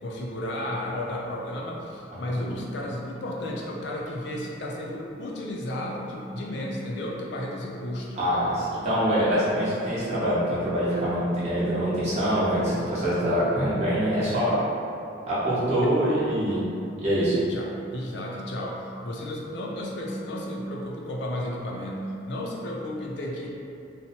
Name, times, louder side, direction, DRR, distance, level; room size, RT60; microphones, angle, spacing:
voice 1, 0.0-8.2 15.8-15.9 17.3-23.5, left 1 dB, 65° left, -2 dB, 0.4 m, -33 dB
voice 2, 2.1-2.6 8.2-14.6 15.3-16.6 17.0-17.4, equal, 35° right, -10 dB, 0.7 m, -24 dB
2.7 x 2.0 x 2.8 m, 2.7 s
head